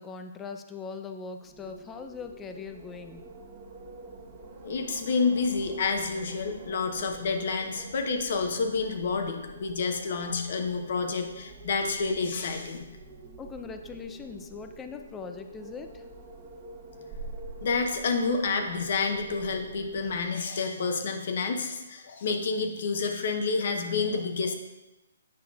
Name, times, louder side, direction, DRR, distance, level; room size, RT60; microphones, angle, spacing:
voice 1, 0.0-3.2 13.4-16.0, left 5 dB, 15° left, 6 dB, 0.5 m, -40 dB
Wind, 1.4-20.4, right 2 dB, 30° right, 1.1 m, -46 dB
voice 2, 4.6-12.9 17.6-24.5, left 4 dB, 60° left, 5 dB, 0.9 m, -29 dB
8.6 x 5.8 x 2.4 m, 1.0 s
hypercardioid pair, 150°, 0 cm